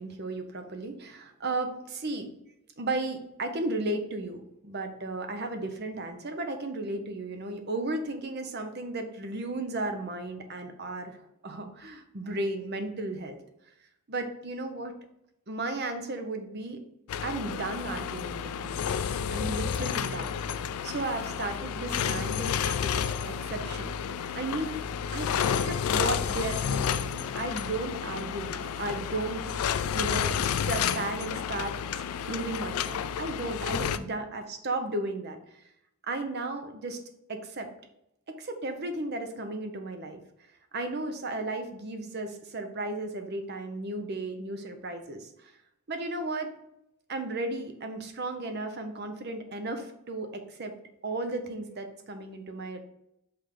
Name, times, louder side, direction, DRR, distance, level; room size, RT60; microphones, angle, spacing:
voice 1, 0.0-1.8 2.0-2.3 2.8-11.2 11.4-13.4 14.1-14.9 15.5-16.8 17.2-19.0 19.3-20.4 20.8-24.0 24.3-24.8 25.1-31.8 32.3-35.4 36.1-37.0 37.3-37.7 38.3-40.2 40.7-45.5 45.9-46.5 47.1-50.7 51.0-52.8, right 2 dB, 45° right, 6 dB, 0.7 m, -34 dB
sound 1, 17.1-34.0, left 7 dB, 80° left, 0.3 m, -31 dB
5.8 x 3.5 x 5.0 m, 0.80 s
head